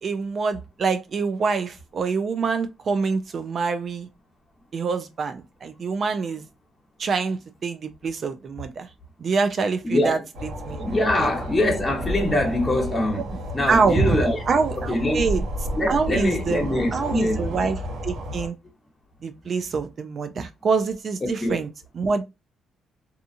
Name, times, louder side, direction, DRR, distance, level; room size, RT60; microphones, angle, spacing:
voice 1, 0.0-4.1 4.7-6.4 7.0-8.9 9.2-10.2 10.7-10.9 11.1-11.3 13.7-15.4 15.9-18.6 19.2-21.7 21.9-22.2, right 4 dB, 50° right, 0.4 m, -25 dB
voice 2, 9.8-10.2 10.8-13.3 13.5-14.4 14.9-15.2 15.7-17.4 21.2-21.6, left 1 dB, 20° left, 0.9 m, -23 dB
sound 1, 10.3-18.5, equal, 90° right, 1.1 m, -32 dB
2.8 x 2.3 x 2.5 m
cardioid pair, 90°, 0 cm